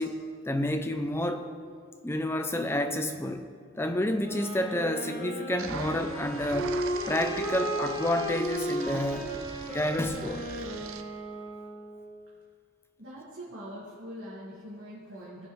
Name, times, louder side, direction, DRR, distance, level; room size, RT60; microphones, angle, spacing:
voice 1, 0.0-1.4 2.0-3.4 3.8-6.8 7.1-9.3 9.7-10.5, left 1 dB, 10° left, 7 dB, 0.4 m, -29 dB
sound 1, 4.2-12.0, right 1 dB, 40° left, 2.0 m, -35 dB
sound 2, 5.6-11.0, right 5 dB, 75° right, 0.6 m, -43 dB
voice 2, 13.0-15.5, equal, 60° right, -8 dB, 2.0 m, -43 dB
17.5 x 6.1 x 3.2 m, 2.1 s
head